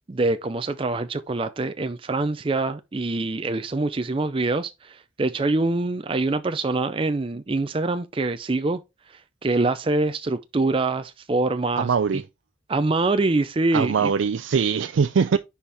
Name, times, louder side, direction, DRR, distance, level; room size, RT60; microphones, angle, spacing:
voice 1, 0.1-8.8 9.1-11.9 12.7-14.1, right 2 dB, 30° right, 0.5 m, -25 dB
voice 2, 11.8-12.3 13.7-15.4, right 6 dB, 90° right, 0.4 m, -22 dB
10.5 x 4.3 x 3.4 m
head